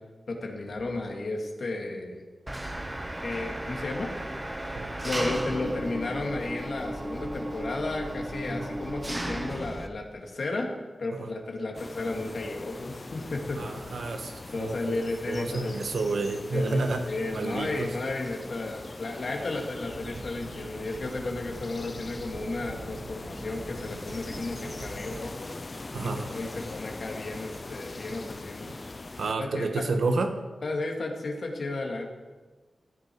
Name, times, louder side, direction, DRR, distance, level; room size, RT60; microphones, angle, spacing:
voice 1, 0.3-2.2 3.2-4.1 5.0-10.7 11.0-13.6 14.5-15.7 16.5-16.8 17.1-25.5 26.0-28.7 29.4-29.8 30.6-32.1, left 2 dB, 60° left, 1 dB, 2.3 m, -33 dB
Engine, 2.5-9.9, right 1 dB, 15° right, 0.9 m, -35 dB
sound 1, 11.7-29.3, left 3 dB, 30° left, 0.5 m, -41 dB
voice 2, 13.5-15.0 15.3-17.1 17.3-17.9 25.9-26.4 29.2-30.4, right 3 dB, 85° right, 6 dB, 1.4 m, -30 dB
sound 2, 19.8-25.4, right 4 dB, 55° right, 0.8 m, -44 dB
15.5 x 11.0 x 4.7 m, 1.3 s
wide cardioid pair, 150°, 0 cm